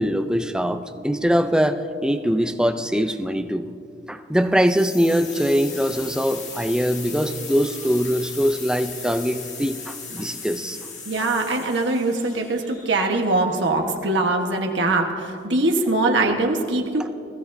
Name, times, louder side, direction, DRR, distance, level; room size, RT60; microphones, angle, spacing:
voice 1, 0.0-3.7 4.1-10.8, equal, 5° right, 8 dB, 0.4 m, -22 dB
sound 1, 4.6-13.4, left 5 dB, 40° left, 1.5 m, -37 dB
voice 2, 11.0-17.1, right 2 dB, 75° right, 2 dB, 1.2 m, -22 dB
20.5 x 15.0 x 2.6 m, 2.5 s
head